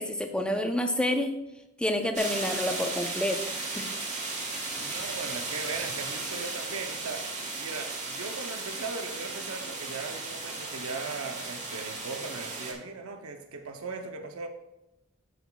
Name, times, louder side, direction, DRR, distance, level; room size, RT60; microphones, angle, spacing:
voice 1, 0.0-1.4 1.8-3.4 3.7-3.9, left 1 dB, 5° left, 4 dB, 0.6 m, -28 dB
sound 1, 2.1-12.7, right 3 dB, 35° right, 1.5 m, -35 dB
voice 2, 4.8-14.5, right 4 dB, 80° right, 5 dB, 0.7 m, -38 dB
13.0 x 5.9 x 2.3 m, 0.93 s
head